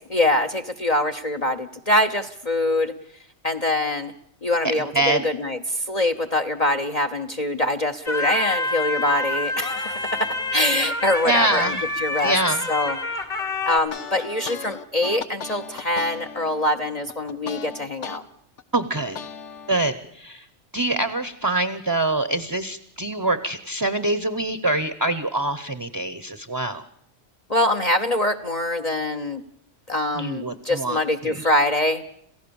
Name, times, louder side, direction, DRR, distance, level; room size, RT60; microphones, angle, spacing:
voice 1, 0.1-2.9 3.4-4.1 4.4-12.3 12.7-13.0 13.7-18.2 27.5-29.4 29.9-32.0, left 1 dB, 35° left, 11 dB, 0.9 m, -24 dB
voice 2, 4.7-5.3 11.2-11.8 12.2-12.6 18.7-19.2 19.7-20.4 20.7-26.8 30.2-31.5, right 2 dB, 20° right, 13 dB, 0.8 m, -25 dB
sound 1, 8.1-13.8, left 2 dB, 55° left, 2.2 m, -27 dB
sound 2, 13.7-18.2 18.6-19.8, left 6 dB, 85° left, 1.4 m, -37 dB
28.0 x 15.5 x 7.0 m, 0.71 s
omnidirectional pair, 1.2 m